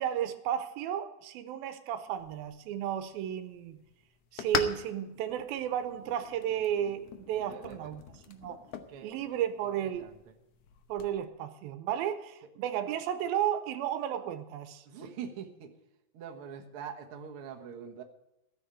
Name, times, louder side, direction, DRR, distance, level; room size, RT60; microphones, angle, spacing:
voice 1, 0.0-3.8 4.3-8.0 8.3-8.6 9.0-10.1 10.9-14.8, right 10 dB, 90° right, 9 dB, 2.6 m, -33 dB
sound 1, 2.2-11.2, left 8 dB, 85° left, 1.3 m, -42 dB
voice 2, 7.5-7.9 8.9-9.1 9.6-10.2 14.8-15.7 16.1-18.0, right 7 dB, 60° right, 3 dB, 1.6 m, -44 dB
13.5 x 7.2 x 8.9 m, 0.91 s
omnidirectional pair, 4.1 m